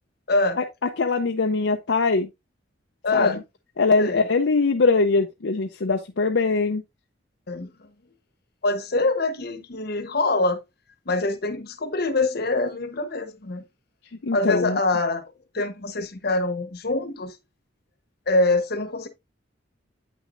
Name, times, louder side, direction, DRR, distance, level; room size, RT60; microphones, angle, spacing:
voice 1, 0.3-0.6 3.0-3.4 4.0-4.2 7.5-7.7 8.6-10.6 11.1-13.6 14.3-15.2 15.5-17.4 18.3-19.1, left 2 dB, 60° left, 1.1 m, -24 dB
voice 2, 1.0-2.3 3.1-3.4 3.8-6.8 14.2-14.8, left 4 dB, 75° left, 0.6 m, -22 dB
8.7 x 6.1 x 2.6 m
head